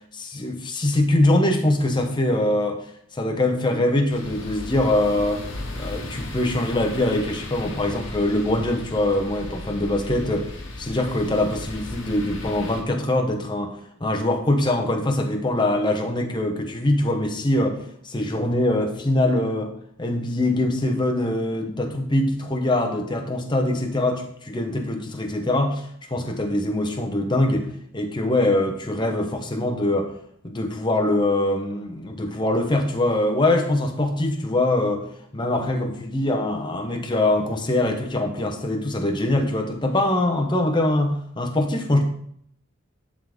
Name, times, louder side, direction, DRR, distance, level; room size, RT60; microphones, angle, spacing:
voice 1, 0.1-2.8 3.1-5.5 5.8-10.5 10.8-13.8 14.0-19.7 20.0-30.1 30.4-35.0 35.3-42.0, left 1 dB, 20° left, 3 dB, 0.8 m, -23 dB
sound 1, 4.1-12.8, left 2 dB, 65° left, 1.2 m, -36 dB
11.0 x 3.8 x 3.5 m, 0.68 s
head